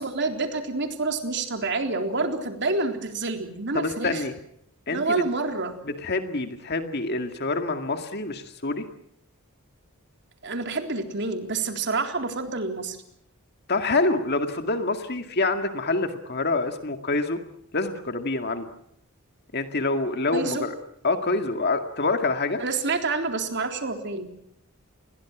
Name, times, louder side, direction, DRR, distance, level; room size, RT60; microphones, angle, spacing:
voice 1, 0.0-4.2 4.9-5.8 10.4-13.0 20.3-20.7 22.6-24.3, right 3 dB, 55° right, 5 dB, 3.8 m, -28 dB
voice 2, 3.7-4.3 4.9-5.2 5.9-8.9 13.7-17.4 17.7-18.7 19.5-20.7 21.0-22.6, left 3 dB, 50° left, 7 dB, 2.1 m, -26 dB
30.0 x 22.0 x 6.2 m, 0.75 s
head